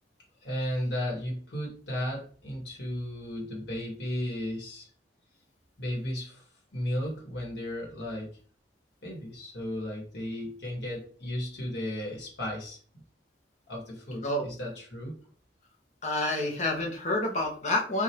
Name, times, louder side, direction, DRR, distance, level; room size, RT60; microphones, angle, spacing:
voice 1, 0.4-4.9 5.8-6.4 6.7-8.4 9.0-13.0 13.7-15.2, left 1 dB, 65° left, -2 dB, 1.5 m, -34 dB
voice 2, 16.0-18.0, left 1 dB, 35° left, 0 dB, 0.8 m, -28 dB
4.8 x 2.4 x 2.9 m, 0.43 s
head